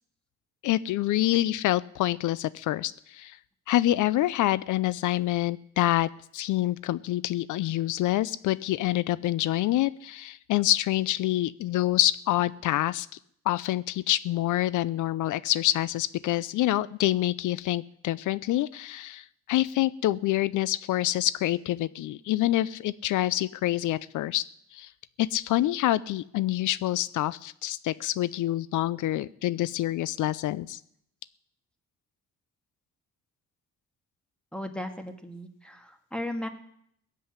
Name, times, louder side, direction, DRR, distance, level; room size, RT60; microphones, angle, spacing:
voice 1, 0.6-3.4 3.7-13.1 13.5-24.4 24.7-24.9 25.2-30.8, left 15 dB, 80° left, 18 dB, 0.6 m, -26 dB
voice 2, 34.5-36.5, left 1 dB, 5° left, 6 dB, 2.4 m, -36 dB
18.0 x 7.7 x 9.7 m, 0.70 s
cardioid pair, 90°, 30 cm